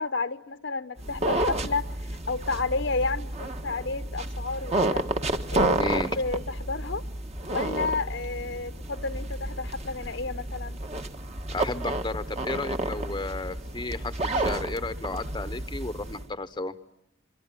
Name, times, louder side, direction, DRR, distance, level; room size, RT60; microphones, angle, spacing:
voice 1, 0.0-1.9 2.3-5.1 5.5-7.0 7.5-10.8, left 3 dB, 60° left, 1.1 m, -31 dB
sound 1, 1.0-16.2, right 1 dB, 35° right, 1.5 m, -31 dB
voice 2, 5.8-6.1 11.5-16.7, left 2 dB, 20° left, 1.0 m, -33 dB
24.5 x 24.5 x 9.1 m
head